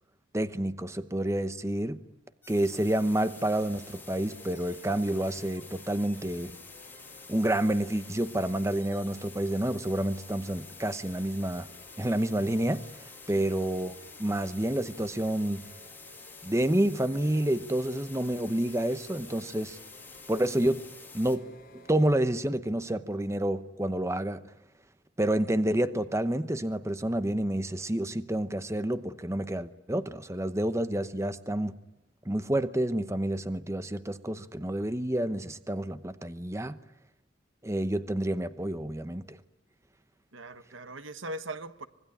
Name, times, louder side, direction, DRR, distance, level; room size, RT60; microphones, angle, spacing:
voice 1, 0.3-2.0 2.5-6.5 7.3-11.7 12.0-13.9 14.2-15.6 16.4-19.8 20.3-20.8 21.1-21.4 21.7-24.4 25.2-31.7 32.3-36.8 37.6-39.4, right 1 dB, 15° right, 0.9 m, -29 dB
sound 1, 2.4-21.4, left 4 dB, 10° left, 2.5 m, -49 dB
sound 2, 3.4-22.4, left 1 dB, 45° left, 6.3 m, -55 dB
voice 2, 40.3-41.9, right 2 dB, 80° right, 1.3 m, -40 dB
25.5 x 21.0 x 9.9 m
head